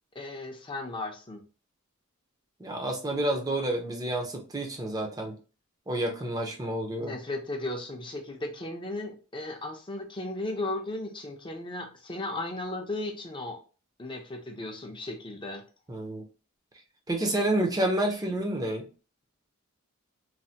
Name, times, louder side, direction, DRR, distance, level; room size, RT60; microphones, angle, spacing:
voice 1, 0.1-1.4 7.0-13.6 14.0-15.6, left 2 dB, 25° left, 3 dB, 0.6 m, -35 dB
voice 2, 2.6-5.4 5.9-7.1 15.9-16.2 17.1-18.8, right 1 dB, 15° right, 2 dB, 0.6 m, -29 dB
3.2 x 2.1 x 2.7 m, 0.35 s
head